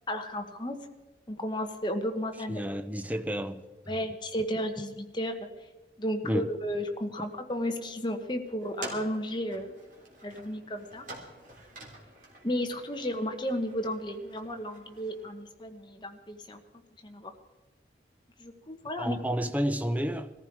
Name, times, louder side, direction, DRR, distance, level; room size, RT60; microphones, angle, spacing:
voice 1, 0.1-0.8 1.3-2.6 3.9-5.5 6.0-9.7 10.2-11.1 12.4-16.6 17.0-17.3 18.4-19.2, equal, 25° left, 1.2 m, -33 dB
voice 2, 2.5-3.6 6.2-6.5 19.0-20.3, equal, 10° right, 0.6 m, -30 dB
sound 1, 8.6-15.3, right 1 dB, 45° right, 3.4 m, -47 dB
21.0 x 14.5 x 4.7 m
head